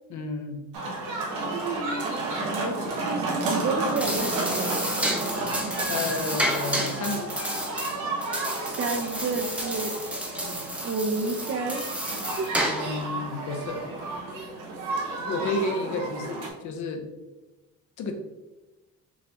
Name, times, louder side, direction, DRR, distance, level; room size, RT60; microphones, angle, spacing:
voice 1, 0.1-0.6 5.9-7.3 12.6-13.8 15.2-17.1 18.0-18.1, left 3 dB, 70° left, 5 dB, 0.7 m, -31 dB
sound 1, 0.7-16.5, right 2 dB, 85° right, 1.2 m, -32 dB
sound 2, 2.3-3.0 3.7-4.7 5.0-5.3 6.1-6.2 6.8-6.9 7.0-7.1 7.3-8.0 8.5-8.9 9.2-9.3, left 3 dB, 15° left, 0.9 m, -44 dB
voice 2, 2.5-4.9 8.6-10.0 10.8-11.8 12.1-12.5, right 3 dB, 50° right, 6 dB, 0.6 m, -30 dB
sound 3, 3.8-13.0, equal, 5° right, 0.7 m, -31 dB
6.2 x 2.2 x 3.0 m, 1.1 s
cardioid pair, 90°, 30 cm